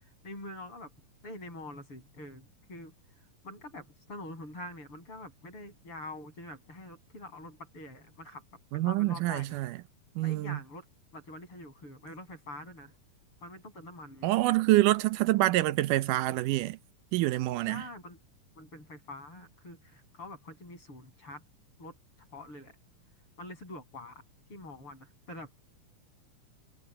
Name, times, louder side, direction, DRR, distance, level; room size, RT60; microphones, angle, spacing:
voice 1, 0.0-0.9 1.2-2.9 3.4-9.6 10.2-10.9 11.1-12.9 13.4-14.3 17.7-18.2 18.6-21.4 21.8-22.8 23.4-24.2 24.5-25.6, left 1 dB, 40° left, 9.0 m, -45 dB
voice 2, 8.7-9.8 10.2-10.6 14.2-16.8 17.1-17.8, right 17 dB, 80° right, 2.2 m, -26 dB
omnidirectional pair, 3.7 m